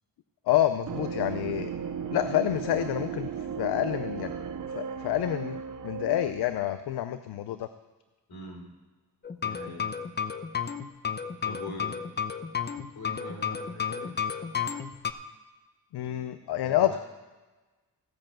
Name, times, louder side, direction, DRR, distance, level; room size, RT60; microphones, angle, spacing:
voice 1, 0.5-1.7 2.1-3.3 3.6-4.4 4.7-7.7 15.9-17.0, left 12 dB, 85° left, 11 dB, 0.6 m, -28 dB
sound 1, 0.9-6.6, right 7 dB, 55° right, 0.9 m, -35 dB
voice 2, 8.3-8.7 9.4-9.9 11.4-12.0 12.9-14.2 16.6-17.0, left 2 dB, 70° left, 1 dB, 3.3 m, -42 dB
sound 2, 9.2-15.1, left 7 dB, 25° left, 0.7 m, -32 dB
15.0 x 5.5 x 7.6 m, 1.2 s
cardioid pair, 100°, 38 cm